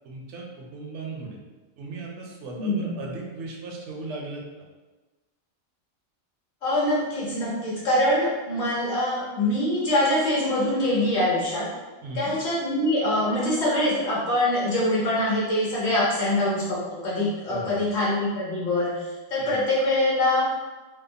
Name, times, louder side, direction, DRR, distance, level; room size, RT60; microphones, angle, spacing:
voice 1, 0.0-1.4 1.8-4.4 12.0-12.3 17.5-17.9 19.4-19.6, right 3 dB, 65° right, -1 dB, 0.8 m, -37 dB
voice 2, 2.5-3.0 6.6-11.7 12.1-20.5, left 1 dB, 55° left, -7 dB, 1.1 m, -24 dB
2.8 x 2.1 x 2.6 m, 1.2 s
omnidirectional pair, 1.4 m